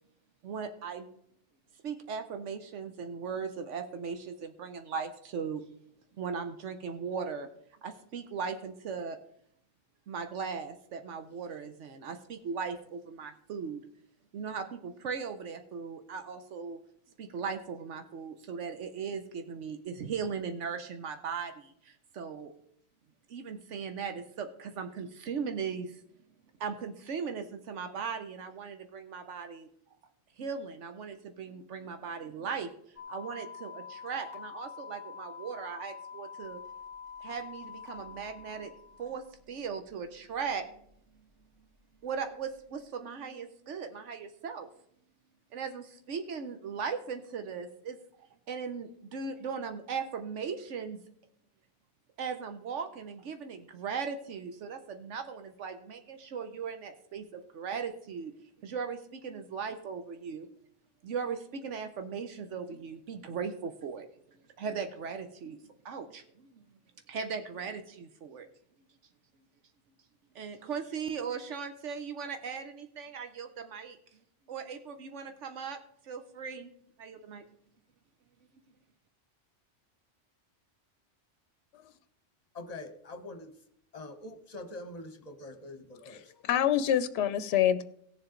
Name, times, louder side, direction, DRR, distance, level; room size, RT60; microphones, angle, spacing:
voice 1, 0.4-1.1 1.8-5.6 6.2-7.5 7.8-9.2 10.1-13.8 14.3-16.8 17.2-22.5 23.3-26.0 26.6-29.7 30.4-36.6 37.2-38.7 39.0-40.7 42.0-44.7 45.5-48.0 48.5-51.0 52.2-58.3 58.6-60.5 61.0-64.1 64.6-65.6 65.8-66.6 67.1-68.5 70.3-74.0 74.5-76.7 77.0-77.4, right 6 dB, 80° right, 1.1 m, -38 dB
sound 1, 33.0-39.3, left 6 dB, 20° right, 1.9 m, -46 dB
voice 2, 82.5-83.5 83.9-86.3, left 2 dB, 35° left, 1.1 m, -44 dB
voice 3, 86.1-87.8, left 10 dB, 70° left, 0.8 m, -26 dB
17.0 x 7.1 x 3.8 m
omnidirectional pair, 1.2 m